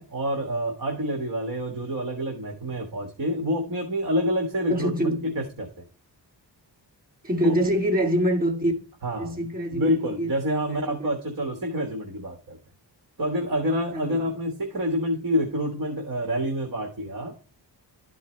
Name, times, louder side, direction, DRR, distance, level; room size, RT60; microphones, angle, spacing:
voice 1, 0.0-5.8 7.4-7.6 9.0-12.6 13.2-17.4, equal, 50° right, 1.5 m, -28 dB
voice 2, 4.7-5.3 7.2-8.7 9.2-10.3 10.7-11.1 13.9-14.3, equal, 20° right, 2.4 m, -25 dB
12.0 x 4.7 x 3.2 m
wide cardioid pair, 160°, 43 cm